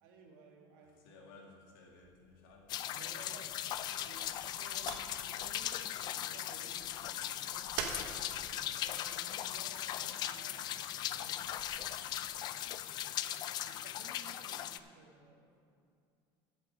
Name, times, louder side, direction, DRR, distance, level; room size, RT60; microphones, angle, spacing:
voice 1, 0.0-1.2 2.9-10.8 11.1-11.5 13.6-15.6, right 3 dB, 90° right, 0 dB, 2.1 m, -56 dB
voice 2, 1.0-3.3 11.9-12.4, left 3 dB, 90° left, -1 dB, 2.3 m, -59 dB
sound 1, 1.8-11.8, right 6 dB, 65° right, 1.1 m, -49 dB
sound 2, 2.7-14.8, left 12 dB, 40° left, 0.4 m, -39 dB
12.0 x 7.8 x 4.8 m, 2.4 s
cardioid pair, 155°, 11 cm